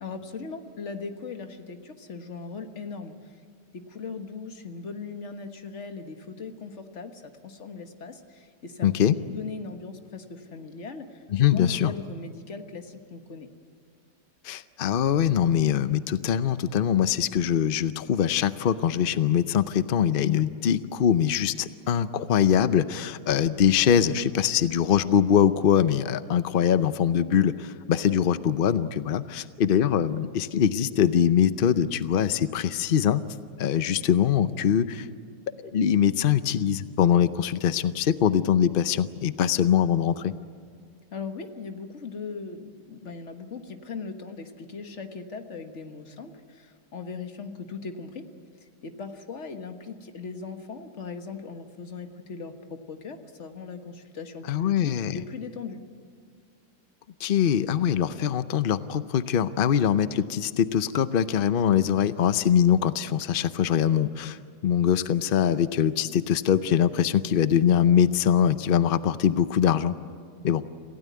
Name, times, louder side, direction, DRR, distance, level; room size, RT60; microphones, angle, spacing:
voice 1, 0.0-3.3 3.7-8.9 9.3-11.2 11.5-13.5 41.1-48.3 48.8-55.8, left 4 dB, 45° left, 6 dB, 1.6 m, -39 dB
voice 2, 8.8-9.1 11.3-11.9 14.4-33.2 33.6-35.1 35.6-40.3 54.5-55.2 57.2-64.4 64.6-70.0 70.4-70.6, left 9 dB, 80° left, 13 dB, 0.4 m, -23 dB
27.5 x 16.0 x 9.5 m, 2.2 s
omnidirectional pair, 1.9 m